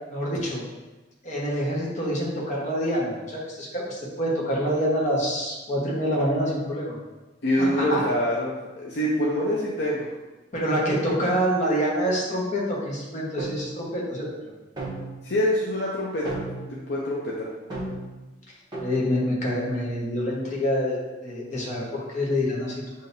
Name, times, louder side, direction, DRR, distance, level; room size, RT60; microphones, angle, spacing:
voice 1, 0.1-0.6 1.2-7.0 7.6-8.0 10.5-14.3 18.8-22.8, equal, 40° left, -4 dB, 1.2 m, -26 dB
voice 2, 7.4-10.1 15.2-17.5, equal, 65° left, -4 dB, 0.6 m, -25 dB
sound 1, 13.4-13.7 14.8-15.4 16.3-16.8 17.7-18.2 18.7-19.0, right 2 dB, 25° right, 1.0 m, -34 dB
6.9 x 2.8 x 2.7 m, 1.1 s
head